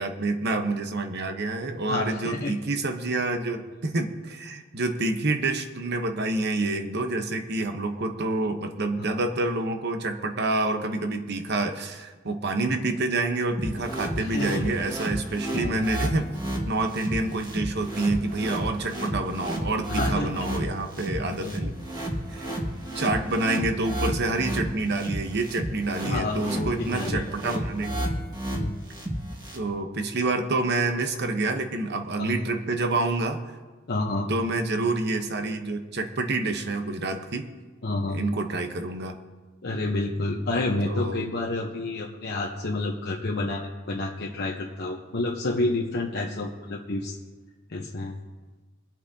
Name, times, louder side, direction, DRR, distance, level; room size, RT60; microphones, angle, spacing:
voice 1, 0.0-16.3 16.7-21.7 22.3-22.5 22.9-28.0 29.5-33.4 34.3-37.5 38.1-39.2 40.8-41.2, right 2 dB, 55° right, 6 dB, 1.0 m, -28 dB
voice 2, 1.9-2.5 9.0-9.2 14.2-14.7 15.5-15.8 19.9-20.5 21.4-21.6 26.0-27.6 28.5-28.7 32.2-32.4 33.9-34.3 37.8-38.2 39.6-47.2 47.7-48.1, left 2 dB, 55° left, -2 dB, 1.0 m, -29 dB
sound 1, 13.6-29.6, equal, 20° right, 1.8 m, -31 dB
24.5 x 8.2 x 2.8 m, 1.3 s
head